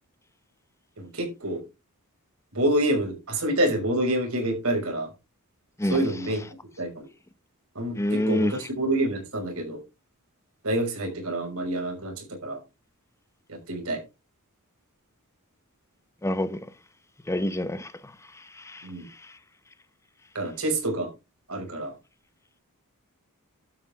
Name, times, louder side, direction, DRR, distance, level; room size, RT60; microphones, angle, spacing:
voice 1, 1.0-1.6 2.5-5.1 5.9-6.4 6.8-7.1 7.7-9.8 10.6-12.6 13.5-14.0 18.8-19.1 20.3-21.1 21.5-21.9, right 1 dB, 70° right, 5.7 m, -27 dB
voice 2, 8.0-8.5 16.2-16.6 17.3-19.4, left 1 dB, 15° left, 0.8 m, -28 dB
12.0 x 8.9 x 3.6 m
head